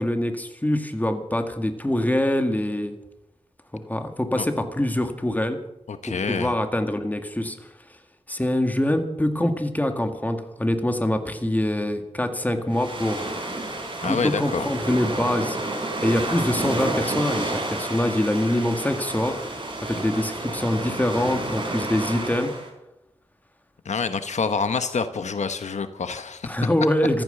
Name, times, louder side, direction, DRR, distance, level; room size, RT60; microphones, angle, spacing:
voice 1, 0.0-2.9 3.9-5.6 6.0-7.7 8.3-13.3 14.0-15.6 16.0-19.4 19.8-22.5 26.4-27.2, left 1 dB, 15° left, 6 dB, 2.0 m, -24 dB
voice 2, 5.9-6.5 14.0-14.7 23.8-26.5, left 5 dB, 85° left, 10 dB, 1.1 m, -27 dB
sound 1, 12.7-22.7, right 2 dB, 45° right, 5.5 m, -30 dB
14.5 x 14.0 x 6.8 m, 0.90 s
wide cardioid pair, 80°, 12 cm